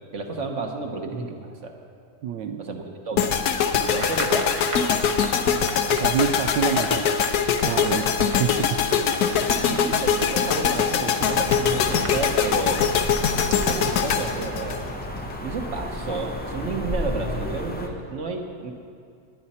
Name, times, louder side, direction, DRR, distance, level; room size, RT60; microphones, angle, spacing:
voice 1, 0.1-1.7 2.6-3.4 3.8-4.6 9.7-12.9 13.5-14.9 15.4-18.7, right 3 dB, 45° right, 3 dB, 1.2 m, -31 dB
voice 2, 2.2-2.7 5.9-7.2 7.6-8.8 9.6-10.0, right 9 dB, 75° right, 6 dB, 1.1 m, -27 dB
sound 1, 3.2-15.3, left 7 dB, 65° left, 1.1 m, -23 dB
sound 2, 3.8-14.2, right 2 dB, 25° right, 0.7 m, -39 dB
sound 3, 11.2-17.9, left 1 dB, 10° left, 0.4 m, -32 dB
19.0 x 11.0 x 4.3 m, 2.3 s
omnidirectional pair, 2.2 m